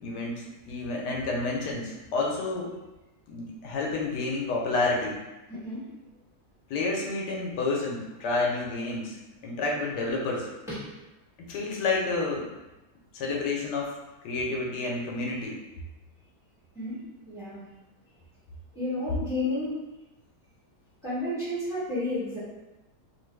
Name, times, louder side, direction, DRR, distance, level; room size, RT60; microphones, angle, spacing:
voice 1, 0.0-2.7 3.3-5.2 6.7-9.2 9.4-10.5 11.4-12.5 13.1-14.0 14.2-15.6, left 3 dB, 80° left, -2 dB, 1.2 m, -29 dB
voice 2, 5.5-5.8 10.7-10.9 16.7-17.0 17.2-17.7 18.7-19.7 21.0-22.4, left 2 dB, ahead, -10 dB, 1.0 m, -31 dB
2.8 x 2.3 x 3.2 m, 1.0 s
omnidirectional pair, 1.8 m